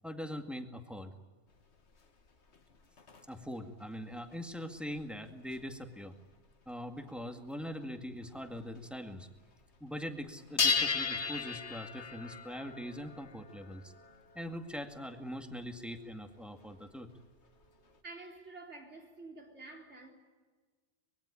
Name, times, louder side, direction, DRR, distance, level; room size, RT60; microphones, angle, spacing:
voice 1, 0.0-1.2 3.3-6.2 6.7-9.3 9.8-13.9 14.3-17.1, equal, ahead, 2.0 m, -42 dB
sound 1, 1.5-3.4 4.0-5.7 6.3-6.7 7.1-7.2 7.5-7.6 7.8-8.8 9.2-9.8 10.1-18.0, left 5 dB, 70° left, 1.9 m, -37 dB
voice 2, 17.9-20.1, right 3 dB, 80° right, 4.3 m, -49 dB
24.5 x 22.0 x 9.9 m
omnidirectional pair, 1.2 m